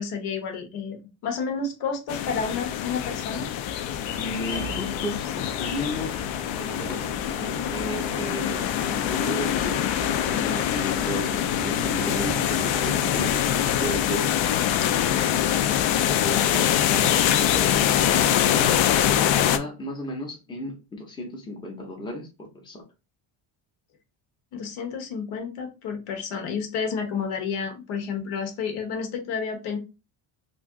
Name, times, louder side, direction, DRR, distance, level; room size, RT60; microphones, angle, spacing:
voice 1, 0.0-3.5 24.5-29.8, left 5 dB, 90° left, 1.1 m, -30 dB
sound 1, 2.1-19.6, left 10 dB, 70° left, 0.5 m, -24 dB
sound 2, 3.7-14.1, right 6 dB, 35° right, 0.5 m, -40 dB
voice 2, 4.2-6.2 6.5-7.0 7.4-14.4 15.0-15.5 16.2-18.7 19.3-22.8, left 1 dB, 10° left, 0.6 m, -35 dB
2.9 x 2.6 x 3.5 m
cardioid pair, 165°, 48 cm